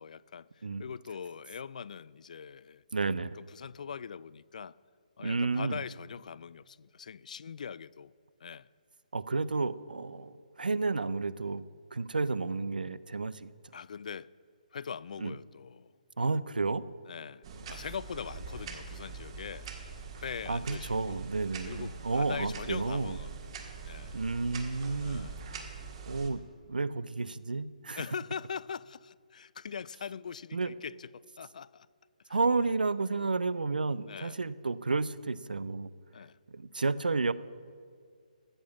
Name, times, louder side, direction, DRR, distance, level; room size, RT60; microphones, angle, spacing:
voice 1, 0.0-2.8 3.4-4.8 5.2-8.1 8.4-8.7 13.7-14.3 14.7-15.9 17.1-21.2 21.7-23.5 23.8-24.2 25.0-25.5 28.0-31.9 32.3-32.7 34.0-34.4 36.1-36.4, left 6 dB, 60° left, 0.3 m, -42 dB
voice 2, 2.9-3.4 5.2-5.8 9.1-11.6 11.9-13.5 15.2-15.3 16.2-16.8 17.7-17.8 20.5-23.2 24.1-25.6 26.1-28.0 30.5-30.7 32.3-35.9 36.5-37.3, right 3 dB, 80° right, 0.5 m, -31 dB
sound 1, 17.4-26.3, right 5 dB, 40° right, 1.6 m, -44 dB
14.5 x 6.6 x 7.3 m
figure-of-eight pair, 140°, 5 cm